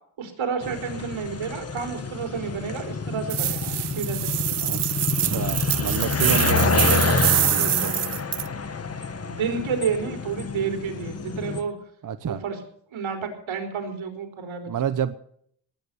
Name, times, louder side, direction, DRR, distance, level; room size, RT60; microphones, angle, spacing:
voice 1, 0.2-4.6 9.2-11.7 12.2-12.6 12.9-14.7, right 6 dB, 85° right, 5 dB, 4.2 m, -30 dB
sound 1, 0.6-11.6, left 5 dB, 30° left, 1.4 m, -28 dB
sound 2, 3.3-8.5, right 15 dB, 60° right, 0.5 m, -25 dB
voice 2, 5.2-7.9 12.0-12.4 14.7-15.1, right 8 dB, 45° right, 11 dB, 0.9 m, -28 dB
19.5 x 9.1 x 6.7 m, 0.64 s
wide cardioid pair, 135°, 46 cm